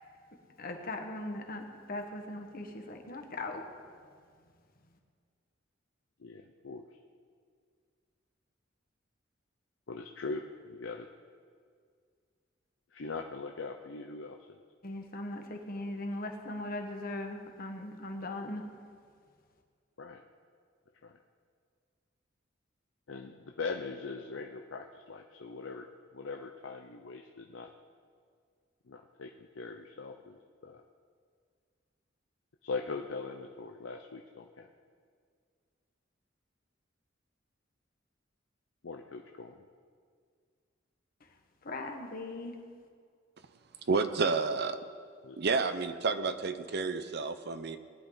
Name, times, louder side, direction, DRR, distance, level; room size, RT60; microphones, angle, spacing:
voice 1, 0.6-3.6 14.8-18.7 41.6-42.5, left 2 dB, 50° left, 3 dB, 1.4 m, -39 dB
voice 2, 6.2-6.8 9.9-11.1 12.9-14.6 20.0-20.2 21.0-21.2 23.1-25.9 26.1-27.7 28.9-30.8 32.6-34.7 38.8-39.6 45.2-45.4, left 4 dB, 80° left, 3 dB, 0.7 m, -41 dB
voice 3, 43.9-44.8 45.4-47.8, right 4 dB, 60° right, 10 dB, 0.7 m, -30 dB
19.5 x 10.0 x 4.0 m, 2.1 s
head